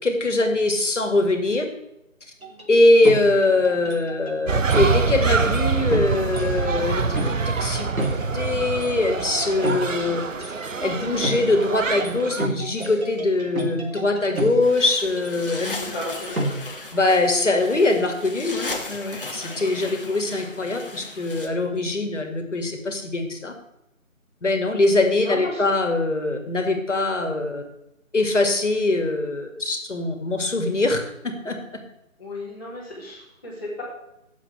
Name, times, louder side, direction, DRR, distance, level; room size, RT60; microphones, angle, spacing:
voice 1, 0.0-1.6 2.7-7.0 7.4-7.9 8.3-10.5 10.8-15.8 16.9-23.5 24.4-27.6 28.1-31.0 31.2-31.6, left 2 dB, 60° left, 4 dB, 2.3 m, -22 dB
sound 1, 2.4-15.7 16.0-16.6, right 1 dB, 80° right, 3.5 m, -32 dB
sound 2, 4.5-12.5, right 5 dB, 65° right, 0.8 m, -25 dB
sound 3, 14.6-21.5, left 2 dB, 40° left, 1.4 m, -36 dB
voice 2, 15.6-16.4 25.2-25.6 32.2-33.8, left 2 dB, 15° left, -12 dB, 2.2 m, -34 dB
17.5 x 7.4 x 3.4 m, 0.87 s
figure-of-eight pair, 170°, 42 cm